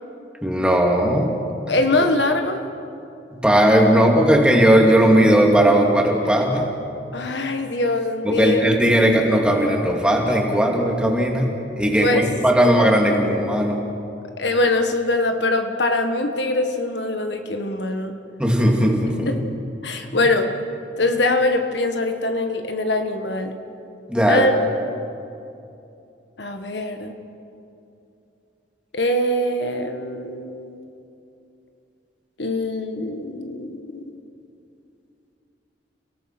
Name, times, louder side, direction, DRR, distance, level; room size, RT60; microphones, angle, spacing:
voice 1, 0.4-1.3 3.3-6.7 8.2-11.5 11.8-13.8 18.4-19.3 24.1-24.5, right 1 dB, 5° right, 0 dB, 2.6 m, -17 dB
voice 2, 1.7-2.6 7.1-8.6 12.0-12.2 12.6-12.8 14.4-18.1 19.2-19.4 19.8-20.5 21.0-23.5 24.3-24.5 26.4-27.1 28.9-30.8 32.4-34.0, left 2 dB, 70° left, 6 dB, 1.5 m, -23 dB
30.0 x 18.0 x 6.0 m, 2.7 s
head